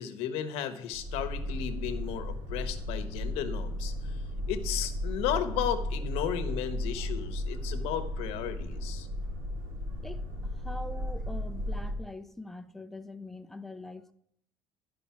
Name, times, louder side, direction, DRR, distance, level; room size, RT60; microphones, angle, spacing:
voice 1, 0.0-3.9 4.5-9.1, left 10 dB, 85° left, 1.0 m, -34 dB
Boat Water vehicle, 0.9-12.0, left 1 dB, 60° right, 2.2 m, -35 dB
voice 2, 10.0-14.1, left 2 dB, 5° left, 0.4 m, -43 dB
11.5 x 5.2 x 5.7 m
cardioid pair, 155°, 10 cm